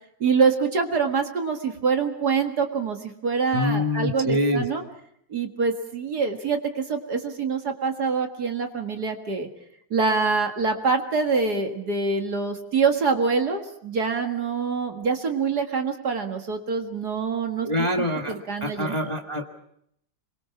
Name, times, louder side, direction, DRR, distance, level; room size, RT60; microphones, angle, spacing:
voice 1, 0.2-4.8 5.3-9.5 9.9-19.0, right 5 dB, 50° right, 5 dB, 2.2 m, -25 dB
voice 2, 3.5-4.7 17.7-19.6, left 1 dB, 15° left, 3 dB, 1.6 m, -25 dB
27.5 x 22.5 x 6.0 m, 0.73 s
omnidirectional pair, 2.4 m